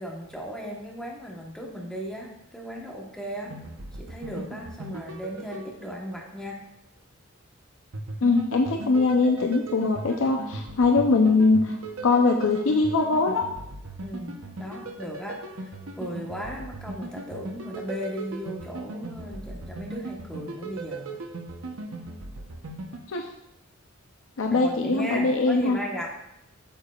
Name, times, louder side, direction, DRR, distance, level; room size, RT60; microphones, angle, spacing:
voice 1, 0.0-3.6 4.0-6.7 14.0-15.7 16.0-21.2 24.5-26.1, equal, 5° left, -2 dB, 1.1 m, -36 dB
sound 1, 3.4-6.4 7.9-23.0, right 2 dB, 80° right, 0.9 m, -38 dB
voice 2, 8.2-11.8 12.0-13.4 23.1-23.2 24.4-25.8, left 3 dB, 70° left, 3 dB, 0.6 m, -22 dB
8.6 x 6.8 x 2.4 m, 0.83 s
head